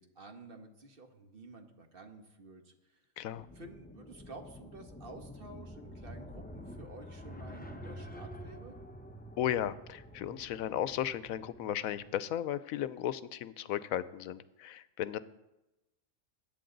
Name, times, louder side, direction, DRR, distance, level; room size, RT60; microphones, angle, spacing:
voice 1, 0.0-3.0 3.5-8.8, right 2 dB, 45° right, 5 dB, 1.4 m, -51 dB
voice 2, 3.2-3.5 9.4-15.2, left 11 dB, 85° left, 15 dB, 1.0 m, -35 dB
sound 1, 3.3-12.2, equal, 10° left, 0.5 m, -48 dB
21.0 x 9.1 x 3.9 m, 0.98 s
omnidirectional pair, 1.4 m